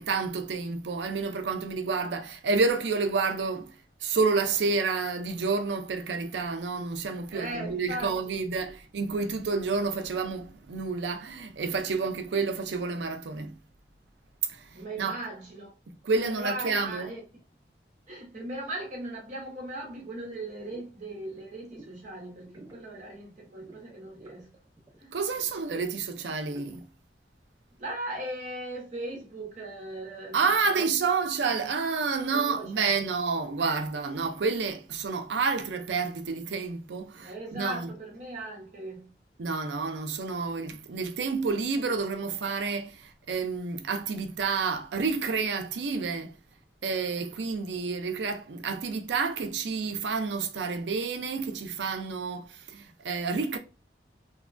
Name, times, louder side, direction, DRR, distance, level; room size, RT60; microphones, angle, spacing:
voice 1, 0.0-13.6 14.5-15.2 16.0-17.1 25.1-26.9 30.3-37.9 39.4-46.4 46.8-53.6, right 4 dB, 85° right, 0.4 m, -29 dB
voice 2, 7.3-8.5 14.7-15.7 16.2-17.2 18.1-24.5 25.0-25.1 27.8-30.4 30.6-30.9 32.3-32.9 37.2-39.1, right 1 dB, 40° right, 0.8 m, -38 dB
sound 1, 20.2-20.4 20.7-20.9 21.2-22.0 22.3-22.9 23.5-25.0 25.3-26.9, right 1 dB, 20° right, 0.5 m, -52 dB
2.9 x 2.2 x 2.5 m
head